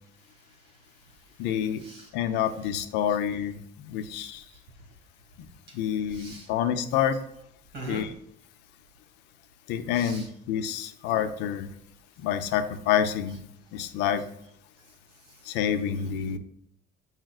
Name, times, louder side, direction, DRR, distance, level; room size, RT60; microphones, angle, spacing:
voice 1, 0.3-1.2 1.7-2.6 3.1-3.2 4.5-4.6 5.7-5.8 6.1-6.5 7.7-8.0 9.9-10.3 14.2-14.3 15.2-15.6, right 2 dB, 85° right, 2 dB, 1.9 m, -45 dB
voice 2, 1.4-1.8 2.1-4.4 5.4-5.5 5.7-7.2 7.9-8.1 9.7-11.7 12.2-13.4 13.7-14.2 15.4-16.4, left 9 dB, 80° left, 10 dB, 0.6 m, -28 dB
7.5 x 5.6 x 2.4 m, 0.69 s
cardioid pair, 180°, 18 cm